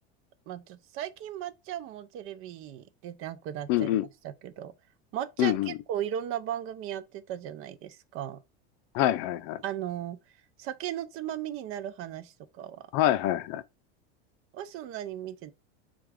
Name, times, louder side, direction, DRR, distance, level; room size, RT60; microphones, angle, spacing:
voice 1, 0.5-3.9 4.2-4.7 5.1-8.4 9.6-10.2 10.6-12.8 14.5-15.5, right 11 dB, 45° right, 0.5 m, -36 dB
voice 2, 3.7-4.1 5.4-5.8 8.9-9.6 12.9-13.6, left 13 dB, 55° left, 0.5 m, -25 dB
4.4 x 2.3 x 3.5 m
supercardioid pair, 115°, 31 cm